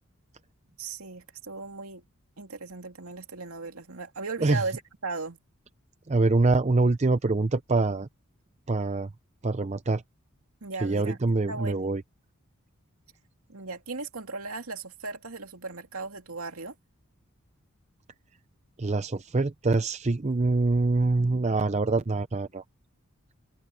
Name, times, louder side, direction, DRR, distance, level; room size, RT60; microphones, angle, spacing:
voice 1, 0.8-2.0 2.4-5.4 10.6-11.2 11.5-12.0 13.5-16.7, right 3 dB, 80° right, 2.5 m, -37 dB
voice 2, 6.1-8.1 8.7-9.1 9.4-10.0 10.8-12.0 18.8-22.6, right 3 dB, 30° right, 0.5 m, -25 dB
head